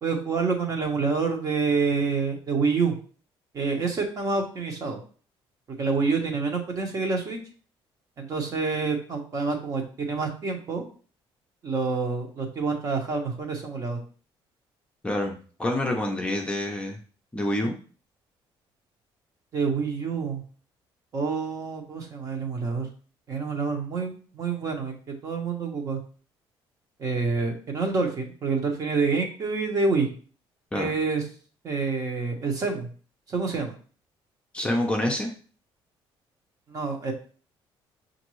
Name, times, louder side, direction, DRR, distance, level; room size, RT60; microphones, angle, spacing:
voice 1, 0.0-2.9 3.5-5.0 5.7-7.4 8.2-10.8 11.6-14.0 19.5-20.4 21.1-22.9 23.3-26.0 27.0-30.1 30.7-31.2 31.6-32.9 33.3-33.7 36.7-37.1, right 4 dB, 35° right, 3 dB, 0.9 m, -27 dB
voice 2, 15.0-15.3 15.6-17.0 17.3-17.7 30.7-30.9 34.5-35.3, left 1 dB, 10° left, 0 dB, 0.6 m, -27 dB
6.4 x 2.6 x 3.1 m, 0.40 s
cardioid pair, 155°, 10 cm